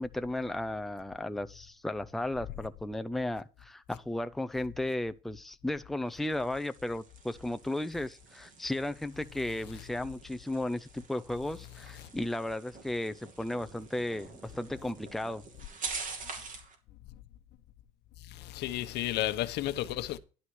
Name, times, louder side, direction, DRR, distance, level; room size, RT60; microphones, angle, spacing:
voice 1, 0.0-15.4, left 1 dB, ahead, 0.6 m, -35 dB
sound 1, 6.1-16.8, right 4 dB, 50° right, 2.8 m, -46 dB
voice 2, 18.3-20.2, left 14 dB, 80° left, 1.0 m, -33 dB
11.0 x 4.3 x 6.3 m
cardioid pair, 110°, 17 cm